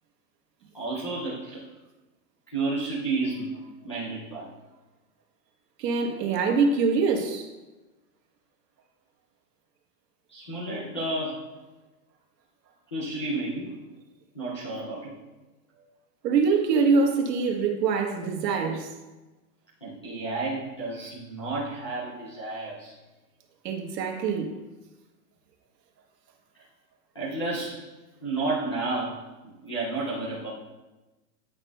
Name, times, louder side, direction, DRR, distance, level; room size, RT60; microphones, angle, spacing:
voice 1, 0.7-1.6 2.5-3.5 3.8-4.5 10.3-11.4 12.9-13.7 14.3-15.1 19.8-22.9 27.1-27.8 28.2-30.5, right 2 dB, 20° left, 0.4 m, -31 dB
voice 2, 5.8-7.5 16.2-18.9 23.6-24.6, right 4 dB, 80° right, 1.4 m, -24 dB
9.7 x 5.9 x 2.2 m
supercardioid pair, 175°, 49 cm